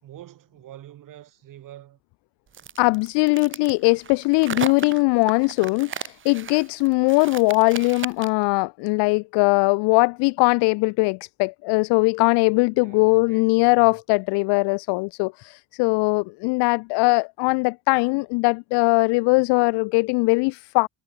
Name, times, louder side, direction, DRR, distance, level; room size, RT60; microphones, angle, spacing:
voice 1, 0.0-2.0 12.7-14.0, right 13 dB, 55° right, 5.7 m, -46 dB
sound 1, 2.5-8.4, right 9 dB, 30° right, 1.1 m, -35 dB
voice 2, 2.8-20.9, left 28 dB, 85° left, 1.1 m, -20 dB
cardioid pair, 135°, 39 cm